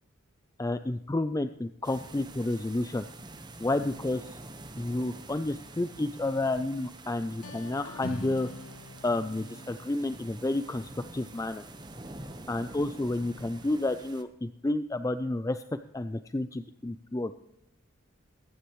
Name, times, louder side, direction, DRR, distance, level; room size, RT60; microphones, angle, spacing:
voice 1, 0.6-3.0 3.6-4.3 4.8-8.5 9.0-11.6 12.5-15.6 15.9-17.3, left 2 dB, 15° left, 10 dB, 0.3 m, -30 dB
sound 1, 1.8-14.2, right 2 dB, 20° right, 1.1 m, -47 dB
sound 2, 7.2-12.9, left 1 dB, 85° left, 0.8 m, -46 dB
sound 3, 7.8-10.7, equal, 60° left, 3.3 m, -58 dB
22.5 x 10.0 x 3.1 m, 0.82 s
head